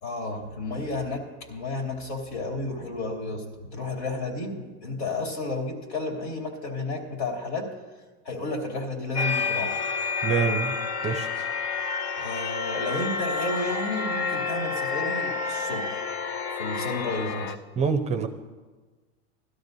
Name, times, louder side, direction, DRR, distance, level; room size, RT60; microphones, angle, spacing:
voice 1, 0.0-7.7 8.2-9.8 12.2-16.0 16.6-17.5, left 2 dB, 75° left, 1 dB, 2.9 m, -32 dB
sound 1, 9.1-17.6, left 4 dB, 45° left, 0.7 m, -29 dB
voice 2, 10.2-10.7 11.0-11.5 17.8-18.3, right 6 dB, 20° right, 6 dB, 0.6 m, -26 dB
17.5 x 12.5 x 2.7 m, 1.3 s
supercardioid pair, 135°, 33 cm